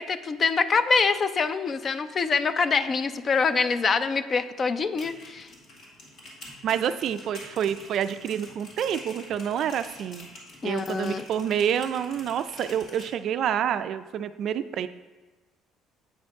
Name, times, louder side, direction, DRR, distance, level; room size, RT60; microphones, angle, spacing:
voice 1, 0.0-5.5 10.6-11.2, left 4 dB, 35° left, 12 dB, 0.4 m, -25 dB
sound 1, 4.8-13.1, left 1 dB, 60° left, 2.1 m, -46 dB
voice 2, 6.6-10.3 10.6-14.9, right 9 dB, 60° right, 12 dB, 0.3 m, -28 dB
8.0 x 4.3 x 4.7 m, 1.2 s
cardioid pair, 105°, 0 cm